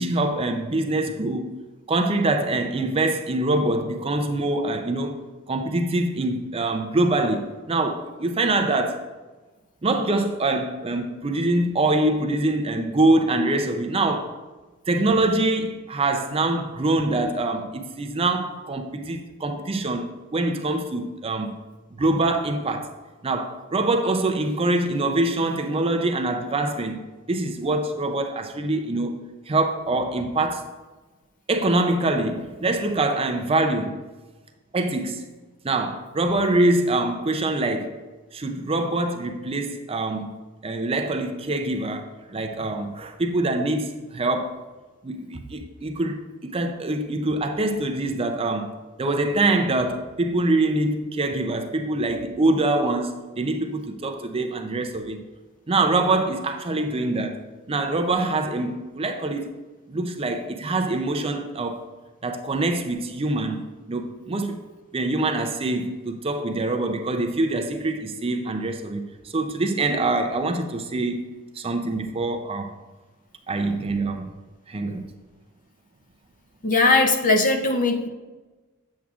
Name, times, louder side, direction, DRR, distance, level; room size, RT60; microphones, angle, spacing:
voice 1, 0.0-1.5 1.9-5.2 5.5-9.0 9.8-14.4 14.9-21.6 22.0-22.9 23.2-30.7 31.5-34.0 34.7-35.3 35.6-38.0 38.3-44.6 45.0-55.2 55.7-59.5 59.9-61.9 62.2-64.7 64.9-72.7 73.5-74.3 74.7-75.0, right 2 dB, 25° right, 0.5 m, -24 dB
voice 2, 76.6-78.1, left 3 dB, 40° left, 0.6 m, -19 dB
8.2 x 7.3 x 2.4 m
head